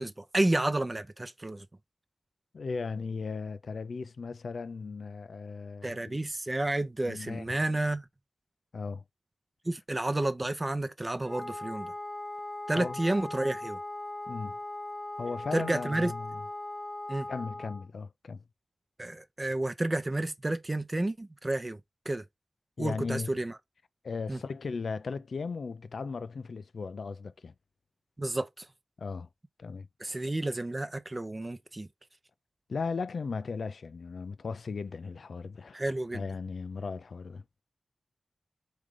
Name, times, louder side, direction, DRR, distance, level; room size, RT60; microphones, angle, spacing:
voice 1, 0.0-1.7 5.8-8.0 9.6-11.9 12.7-13.8 15.5-16.1 17.1-17.3 19.0-21.8 22.1-22.2 22.8-23.5 24.3-24.4 28.2-28.7 30.0-31.9 35.7-36.3, right 2 dB, 30° right, 0.6 m, -31 dB
voice 2, 2.5-6.3 7.0-7.5 8.7-9.0 12.7-13.0 14.3-14.6 15.2-16.4 17.3-18.4 22.8-23.3 24.0-27.5 29.0-29.3 29.6-30.2 32.7-35.8 36.1-37.4, left 4 dB, 75° left, 0.4 m, -37 dB
Wind instrument woodwind instrument, 11.2-17.9, left 1 dB, 5° left, 0.8 m, -39 dB
3.7 x 3.2 x 3.6 m
cardioid pair, 65°, 0 cm